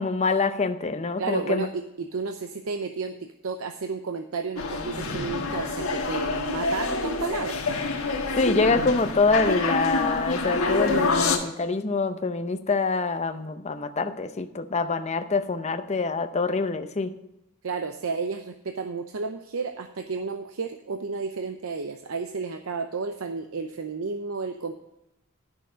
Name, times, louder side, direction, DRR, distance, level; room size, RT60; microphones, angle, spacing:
voice 1, 0.0-1.7 8.4-17.1, left 3 dB, 30° left, 9 dB, 0.7 m, -25 dB
voice 2, 1.2-3.1 3.4-7.6 17.6-24.7, right 4 dB, 80° right, 7 dB, 0.7 m, -32 dB
sound 1, 4.6-11.4, left 3 dB, 80° left, 1.5 m, -27 dB
12.0 x 6.4 x 5.1 m, 0.90 s
head